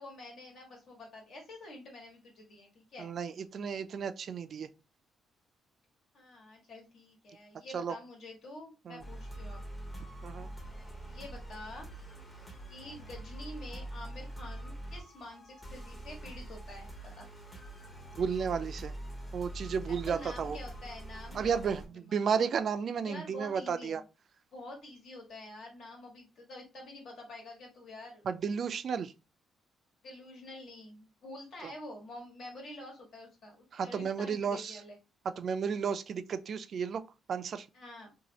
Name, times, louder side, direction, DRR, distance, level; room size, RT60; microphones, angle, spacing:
voice 1, 0.0-3.1 6.1-9.6 11.1-11.9 12.7-17.3 19.9-21.7 22.1-22.2 23.0-24.0 24.5-28.3 30.0-35.0 37.7-38.1, left 1 dB, 65° left, 1.4 m, -47 dB
voice 2, 3.0-4.7 7.7-7.9 8.9-9.0 10.2-10.5 18.2-18.9 19.3-20.6 21.3-24.0 28.3-29.1 31.6-31.7 33.7-34.8 35.4-37.0 37.3-37.7, right 6 dB, 55° right, 0.3 m, -33 dB
sound 1, 9.0-21.9, right 1 dB, 20° left, 0.8 m, -44 dB
2.7 x 2.4 x 2.9 m
cardioid pair, 90°, 0 cm